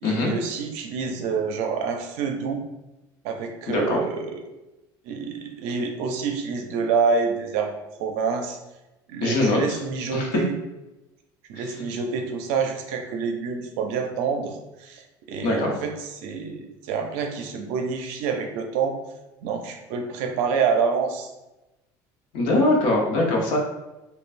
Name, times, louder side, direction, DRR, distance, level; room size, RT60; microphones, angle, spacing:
voice 1, 0.0-2.6 3.2-4.4 5.0-7.7 8.0-8.6 9.1-10.5 11.5-19.0 19.4-21.3, right 5 dB, 70° right, 4 dB, 0.6 m, -27 dB
voice 2, 3.7-4.0 9.2-9.8 10.1-10.3 15.4-15.7 22.3-23.6, left 2 dB, 55° left, 0 dB, 0.8 m, -22 dB
5.4 x 2.3 x 2.5 m, 1.0 s
cardioid pair, 180°, 8 cm